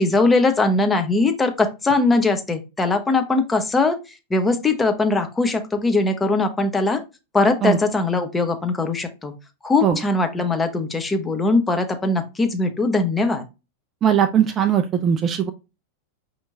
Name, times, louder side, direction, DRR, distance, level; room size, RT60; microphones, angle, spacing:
voice 1, 0.0-4.0 4.3-7.0 7.3-9.3 9.6-13.4, left 3 dB, 10° left, 6 dB, 0.7 m, -20 dB
voice 2, 14.0-15.5, right 9 dB, 25° right, 7 dB, 0.4 m, -19 dB
5.3 x 2.9 x 2.5 m, 0.27 s
figure-of-eight pair, 90°, 0 cm